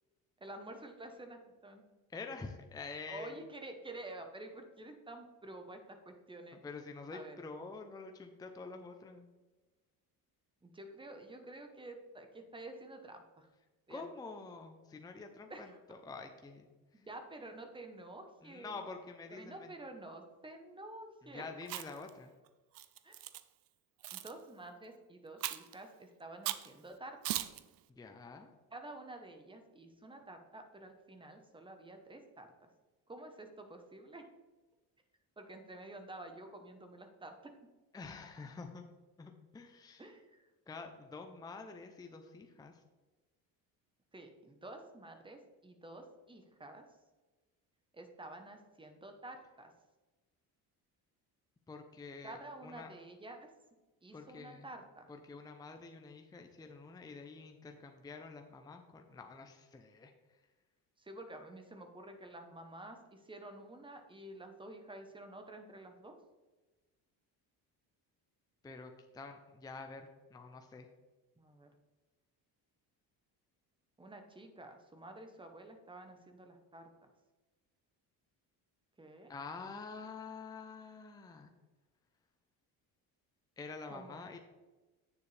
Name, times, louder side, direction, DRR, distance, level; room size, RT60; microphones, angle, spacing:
voice 1, 0.4-1.8 3.1-6.6 7.1-7.4 10.6-13.5 13.9-14.0 15.5-15.8 16.9-18.8 19.3-21.5 23.0-23.2 24.1-27.4 28.7-32.5 33.1-34.2 35.4-37.5 40.0-40.5 44.1-46.8 47.9-49.7 52.2-53.5 54.0-55.1 61.0-66.1 71.4-71.7 74.0-76.9 79.0-79.3 83.9-84.2, right 2 dB, 15° right, 5 dB, 1.0 m, -50 dB
voice 2, 2.1-3.4 6.6-9.3 13.9-16.7 18.4-19.7 21.3-22.3 28.0-28.5 37.9-38.8 39.2-40.0 40.7-42.7 51.7-52.9 54.1-54.7 55.2-60.1 68.6-70.9 79.3-81.5 83.6-84.4, left 4 dB, 10° left, 5 dB, 0.6 m, -47 dB
Chewing mastication, 21.6-22.1 22.8-23.4 24.0-24.3 25.4-25.7 26.5-26.7 27.2-27.6, right 14 dB, 60° right, 0.5 m, -38 dB
9.2 x 7.0 x 3.3 m, 1.2 s
cardioid pair, 125°, 39 cm